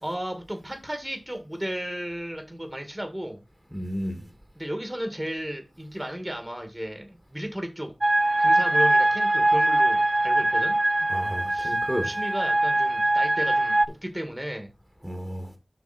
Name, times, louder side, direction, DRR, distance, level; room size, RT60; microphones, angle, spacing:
voice 1, 0.0-3.4 4.6-7.9 8.4-10.8 11.5-11.8 12.0-14.7, equal, 20° right, 1.9 m, -34 dB
voice 2, 3.7-4.3 11.1-12.1 15.0-15.5, equal, ahead, 1.9 m, -32 dB
sound 1, 8.0-13.9, right 1 dB, 35° right, 0.4 m, -22 dB
7.7 x 5.7 x 4.2 m
wide cardioid pair, 50°, 0 cm